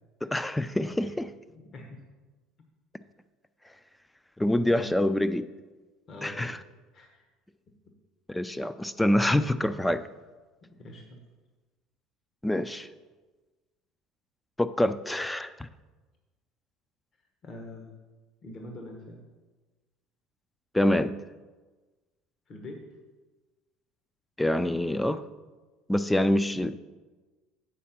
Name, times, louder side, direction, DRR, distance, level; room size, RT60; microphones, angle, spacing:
voice 1, 0.2-1.3 4.4-5.5 6.2-6.6 8.3-10.1 12.4-12.9 14.6-15.7 20.7-21.2 24.4-25.2 25.9-26.8, left 1 dB, 5° left, 0.3 m, -26 dB
voice 2, 1.5-2.0 4.7-5.0 6.1-6.5 6.9-7.2 10.6-11.2 17.4-17.9 18.4-19.2 22.5-23.0, left 1 dB, 40° left, 1.1 m, -44 dB
8.4 x 4.3 x 5.8 m
supercardioid pair, 115°, 0 cm